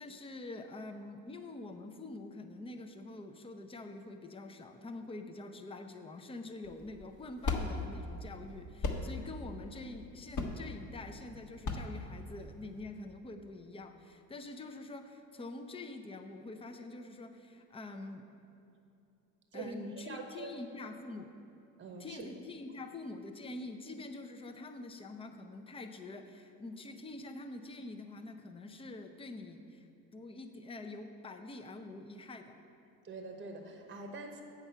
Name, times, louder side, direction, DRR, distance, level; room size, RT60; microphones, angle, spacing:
voice 1, 0.0-18.3 19.5-21.3 22.0-29.9 30.1-32.6, left 2 dB, 15° left, 6 dB, 0.6 m, -46 dB
sound 1, 6.6-12.8, left 3 dB, 45° left, 1.1 m, -38 dB
voice 2, 19.5-20.6 21.8-22.3 33.0-34.4, right 3 dB, 25° right, 4 dB, 1.0 m, -44 dB
7.9 x 5.9 x 5.6 m, 2.7 s
supercardioid pair, 85°, 42 cm